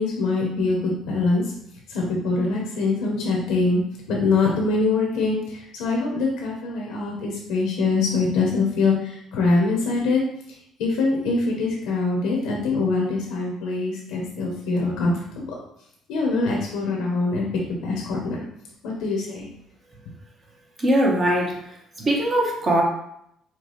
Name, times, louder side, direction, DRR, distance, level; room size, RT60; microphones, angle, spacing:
voice 1, 0.0-1.4 1.9-3.8 4.1-10.2 10.8-15.5 16.1-18.4 18.8-19.5, left 3 dB, 90° left, -2 dB, 1.0 m, -23 dB
voice 2, 20.8-21.5 22.0-22.8, right 1 dB, 35° right, -1 dB, 1.0 m, -20 dB
5.8 x 2.3 x 3.2 m, 0.74 s
cardioid pair, 105°, 0 cm